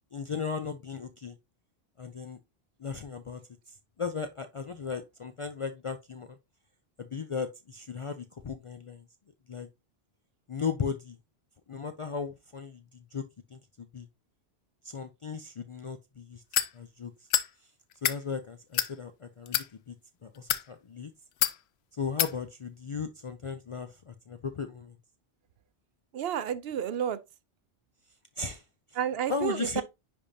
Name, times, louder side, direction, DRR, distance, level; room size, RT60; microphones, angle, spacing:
voice 1, 0.1-1.4 2.0-2.4 2.8-3.4 3.7-6.4 7.0-9.0 9.5-9.7 10.5-11.2 11.7-13.2 13.5-14.1 14.8-16.4 16.7-17.1 18.0-19.9 20.2-21.1 21.9-24.9 28.4-29.0 29.3-29.8, left 5 dB, 50° left, 0.3 m, -36 dB
sound 1, 16.5-16.7 17.3-17.5 17.9-18.2 18.7-18.9 19.5-19.7 20.3-20.6 21.4-21.6 22.2-22.3, left 11 dB, 85° left, 0.8 m, -27 dB
voice 2, 26.1-27.2 29.0-29.8, right 9 dB, 75° right, 0.8 m, -30 dB
10.0 x 3.5 x 2.7 m
omnidirectional pair, 1.1 m